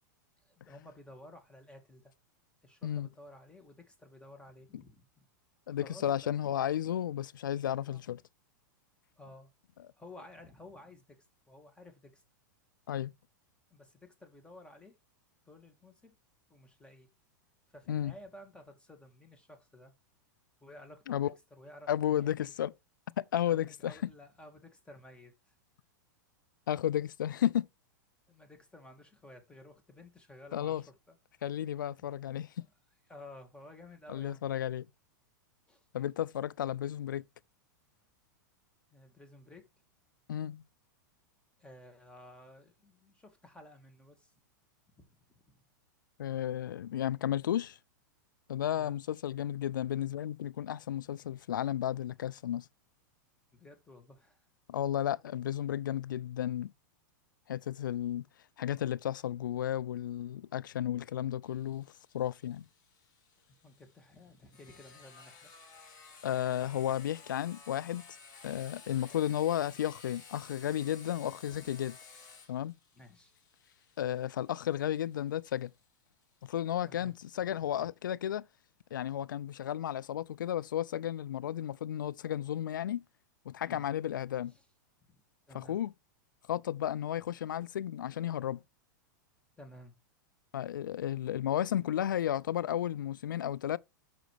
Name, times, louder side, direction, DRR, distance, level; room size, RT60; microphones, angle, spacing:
voice 1, 0.4-2.1 2.6-5.2 5.7-6.1 7.9-8.1 9.2-9.5 10.0-12.2 13.7-15.0 15.5-16.2 16.5-17.1 17.7-19.9 20.6-22.5 23.5-25.5 28.3-31.2 33.1-34.4 35.7-35.8 38.9-39.7 41.6-44.3 45.0-45.6 48.7-49.0 53.5-54.4 63.5-65.5 65.9-66.0 71.5-71.7 72.9-73.3 76.8-77.9 83.7-83.9 84.5-84.6 85.1-85.2 85.5-85.8 89.6-89.9, left 1 dB, 10° left, 1.9 m, -54 dB
voice 2, 5.7-8.2 12.9-13.1 17.9-18.1 21.1-21.3 21.9-22.7 23.2-24.1 26.7-27.7 30.5-30.8 31.4-32.5 34.1-34.9 35.9-37.2 40.3-40.6 46.2-47.8 48.5-52.7 54.7-56.7 57.5-58.3 58.6-62.7 66.2-68.0 68.4-71.9 72.5-72.7 74.0-75.7 76.4-78.4 78.9-83.0 83.5-84.5 85.5-85.9 86.5-88.6 90.5-93.8, left 11 dB, 80° left, 0.4 m, -33 dB
Sawing, 61.4-76.9, left 5 dB, 40° left, 2.5 m, -55 dB
6.2 x 5.1 x 4.6 m
hypercardioid pair, 110°, 10 cm